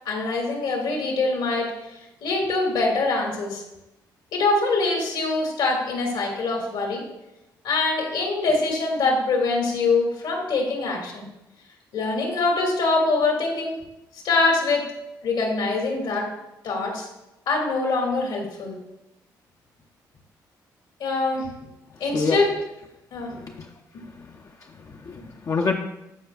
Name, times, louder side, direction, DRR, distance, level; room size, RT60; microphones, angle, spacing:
voice 1, 0.1-1.7 2.2-3.6 4.3-7.0 7.6-11.3 11.9-13.7 14.2-14.8 15.2-16.3 16.6-17.1 17.5-18.8 21.0-21.5 22.0-22.5 23.1-23.4, left 3 dB, 75° left, 0 dB, 2.1 m, -24 dB
voice 2, 21.9-22.4 23.3-23.7 24.1-25.7, left 4 dB, 45° left, 1 dB, 0.6 m, -29 dB
12.5 x 4.7 x 2.4 m, 0.92 s
supercardioid pair, 65°, 8 cm